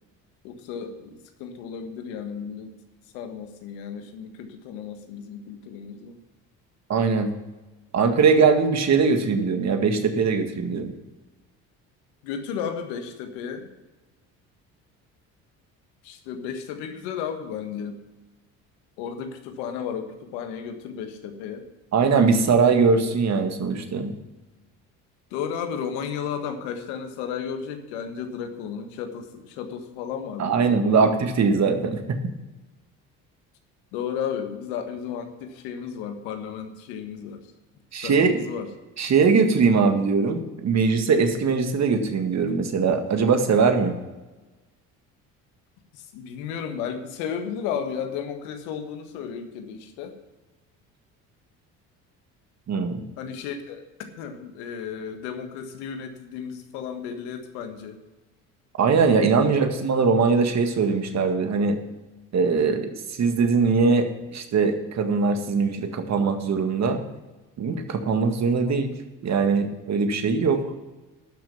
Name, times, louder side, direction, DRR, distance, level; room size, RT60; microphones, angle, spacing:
voice 1, 0.4-2.7 3.1-6.2 12.2-13.7 16.0-18.0 19.0-21.6 25.3-31.1 33.9-37.5 38.0-38.7 45.9-50.1 53.2-58.0 59.4-59.8 62.7-62.8 68.6-68.8, left 7 dB, 90° left, 6 dB, 1.6 m, -34 dB
voice 2, 6.9-7.3 7.9-10.9 21.9-24.1 30.4-32.2 37.9-38.4 39.0-44.0 52.7-53.0 58.8-61.8 62.3-67.0 67.6-68.9 69.2-70.6, right 5 dB, 45° right, 6 dB, 1.8 m, -21 dB
12.5 x 6.1 x 7.1 m, 1.1 s
supercardioid pair, 80°, 36 cm